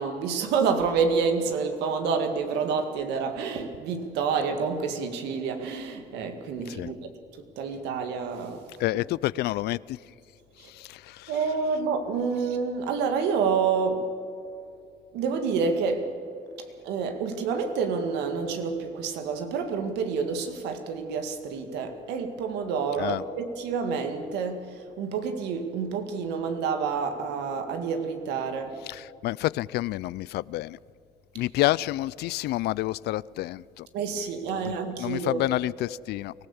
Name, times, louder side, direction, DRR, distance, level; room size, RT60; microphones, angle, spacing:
voice 1, 0.0-7.1 7.6-8.7 10.6-10.7 11.3-14.1 15.1-16.1 16.6-28.8 33.9-35.4, right 5 dB, 90° right, 2.0 m, -28 dB
voice 2, 8.8-10.0 10.6-11.3 23.0-23.2 28.9-30.8 31.3-33.9 34.5-34.7 35.0-36.3, left 17 dB, 75° left, 0.4 m, -29 dB
24.0 x 15.0 x 7.1 m
cardioid pair, 110°, 17 cm